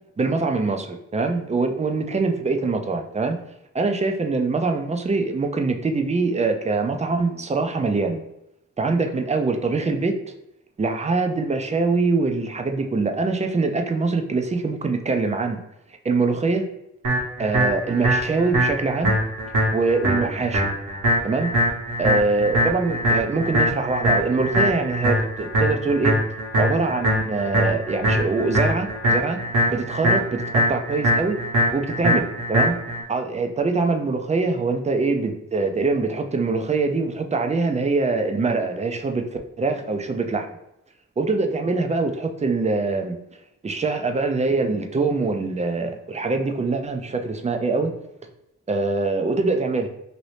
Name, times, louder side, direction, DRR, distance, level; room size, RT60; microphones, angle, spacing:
voice 1, 0.2-3.4 3.7-8.2 8.8-10.2 10.8-15.6 16.0-16.6 17.4-19.1 19.7-20.7 21.2-21.5 22.0-26.2 26.6-29.4 29.7-31.4 31.7-32.8 33.1-40.5 41.2-43.2 43.6-47.9 48.7-49.9, right 3 dB, 25° right, 4 dB, 0.4 m, -23 dB
sound 1, 17.0-33.0, equal, 75° right, 1.1 m, -22 dB
3.0 x 2.7 x 3.2 m, 0.86 s
wide cardioid pair, 90°, 31 cm